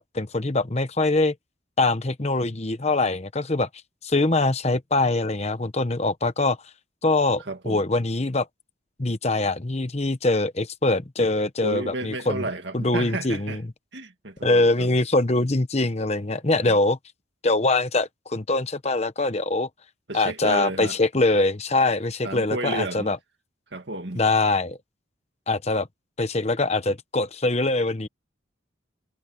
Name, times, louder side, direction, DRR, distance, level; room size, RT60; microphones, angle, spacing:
voice 1, 0.0-1.3 1.8-3.7 4.0-6.6 7.0-8.5 9.0-12.5 12.7-13.6 14.4-17.0 17.4-19.7 20.1-23.2 24.1-24.8 25.5-25.9 26.2-28.1, left 2 dB, 30° left, 1.0 m, -23 dB
voice 2, 7.4-7.9 11.6-13.6 13.9-14.9 16.6-16.8 20.1-21.0 22.2-23.1 23.7-24.2, right 2 dB, 60° right, 2.2 m, -32 dB
head